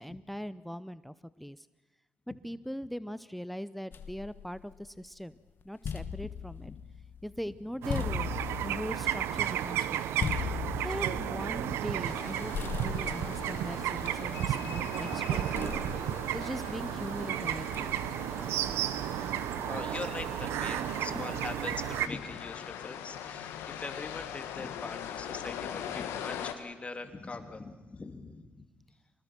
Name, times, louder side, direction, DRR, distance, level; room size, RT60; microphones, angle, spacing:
voice 1, 0.0-1.7 2.4-5.3 5.6-6.7 7.2-8.3 8.6-10.1 10.8-15.7 16.3-17.9 18.3-18.4, equal, ahead, 16 dB, 0.6 m, -40 dB
sound 1, 3.9-5.2 5.6-12.3 12.5-14.8 15.5-17.0 17.7-18.2, left 7 dB, 55° left, 1.3 m, -39 dB
sound 2, 7.8-22.1, right 11 dB, 85° right, 0.8 m, -33 dB
voice 2, 11.3-11.6 13.2-13.3 14.4-14.5 19.6-28.6, left 3 dB, 30° left, 7 dB, 2.5 m, -42 dB
sound 3, 12.0-26.5, left 9 dB, 85° left, 1.6 m, -42 dB
25.5 x 19.5 x 6.1 m, 1.2 s
supercardioid pair, 65°, 4 cm